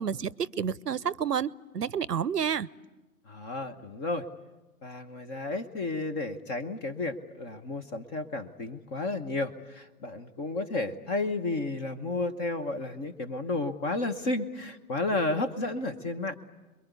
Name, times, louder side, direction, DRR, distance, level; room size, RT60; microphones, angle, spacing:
voice 1, 0.0-2.7, right 7 dB, 90° right, 21 dB, 0.8 m, -30 dB
voice 2, 3.3-4.3 4.8-16.3, left 2 dB, 20° left, 9 dB, 1.0 m, -32 dB
27.0 x 22.5 x 8.2 m, 1.1 s
figure-of-eight pair, 135°, 46 cm